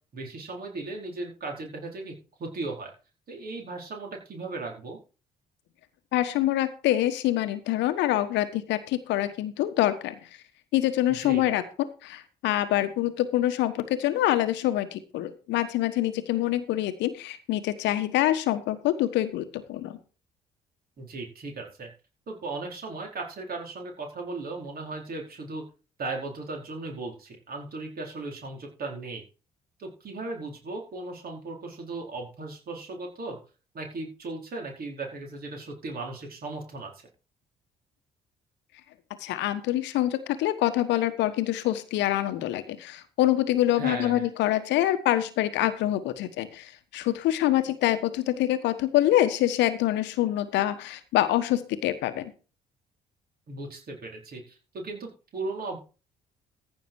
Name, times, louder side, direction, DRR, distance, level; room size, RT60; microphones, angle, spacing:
voice 1, 0.1-2.1 2.4-2.9 3.3-5.0 11.1-11.5 21.0-21.9 22.3-25.6 26.0-29.2 29.8-33.4 33.7-36.9 43.8-44.3 53.5-55.8, right 3 dB, 50° right, 1 dB, 4.6 m, -37 dB
voice 2, 6.1-10.1 10.7-11.6 12.0-20.0 39.2-52.3, left 14 dB, 65° left, 12 dB, 1.2 m, -25 dB
14.5 x 6.6 x 4.7 m, 0.34 s
figure-of-eight pair, 45°, 20 cm